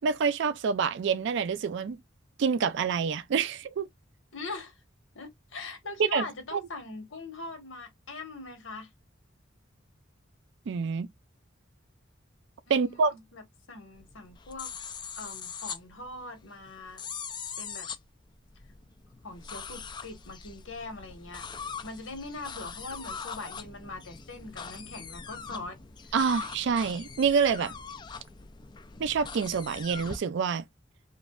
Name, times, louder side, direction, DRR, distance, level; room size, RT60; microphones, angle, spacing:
voice 1, 0.0-2.0 2.4-3.9 6.1-6.2 10.7-11.1 12.7-13.1 26.1-27.7 29.0-30.6, right 5 dB, 65° right, 0.4 m, -27 dB
voice 2, 4.3-4.8 5.1-8.9 12.7-13.4 13.7-14.7 15.2-17.0 17.6-17.9 19.2-21.4 21.8-25.8, left 3 dB, 80° left, 1.3 m, -41 dB
sound 1, 13.9-30.2, left 6 dB, 25° left, 0.3 m, -42 dB
3.1 x 2.5 x 2.3 m
head